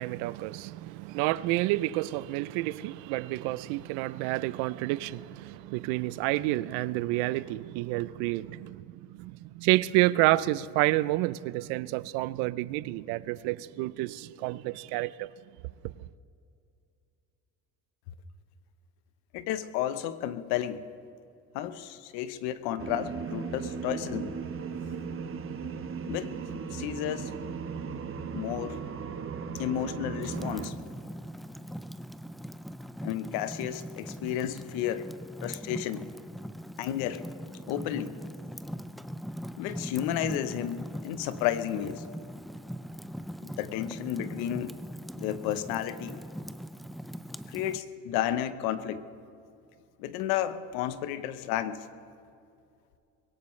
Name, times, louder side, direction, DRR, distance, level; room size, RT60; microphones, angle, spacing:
voice 1, 0.0-15.3, right 18 dB, 85° right, 0.6 m, -29 dB
voice 2, 19.3-20.8 21.5-24.4 26.1-26.3 26.7-27.3 28.3-28.8 29.5-30.7 33.0-35.1 35.4-36.0 36.8-37.2 37.7-38.2 39.6-42.0 43.4-44.8 45.2-46.2 47.5-49.0 50.0-51.8, left 11 dB, 85° left, 1.0 m, -32 dB
sound 1, 22.8-30.7, right 6 dB, 35° right, 1.1 m, -37 dB
Fire, 30.2-47.8, equal, ahead, 0.4 m, -41 dB
22.0 x 17.0 x 3.2 m
supercardioid pair, 105°, 37 cm